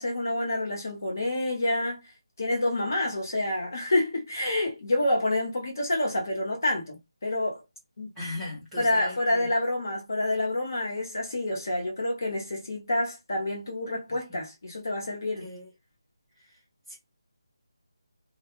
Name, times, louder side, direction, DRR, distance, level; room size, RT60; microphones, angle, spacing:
voice 1, 0.0-2.0 2.4-7.6 8.0-8.1 8.8-15.5, left 1 dB, 40° left, 0.8 m, -28 dB
voice 2, 8.2-9.5 15.4-15.7 16.9-17.0, left 2 dB, ahead, 0.7 m, -38 dB
2.1 x 2.0 x 2.9 m
figure-of-eight pair, 180°, 3 cm